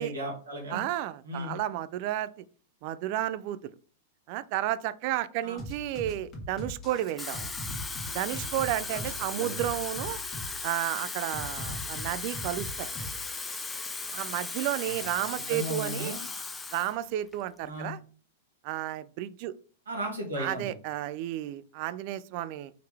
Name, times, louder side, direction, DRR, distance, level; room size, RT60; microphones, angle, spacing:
voice 1, 0.0-0.8 1.2-1.5 5.4-5.6 8.9-9.6 14.8-16.2 17.6-17.9 19.9-20.7, equal, 85° right, -1 dB, 2.0 m, -36 dB
voice 2, 0.7-2.3 2.8-3.7 4.3-7.5 8.1-10.2 10.6-12.9 14.1-16.2 16.7-18.0 18.6-19.5 20.4-22.7, right 13 dB, 50° right, 16 dB, 0.3 m, -32 dB
sound 1, 5.6-13.6, equal, 30° left, 1.4 m, -40 dB
Water tap faucet / Fill (with liquid), 7.0-16.9 17.3-17.6, left 4 dB, 15° left, 0.6 m, -37 dB
4.8 x 3.2 x 3.4 m, 0.41 s
hypercardioid pair, 105°, 0 cm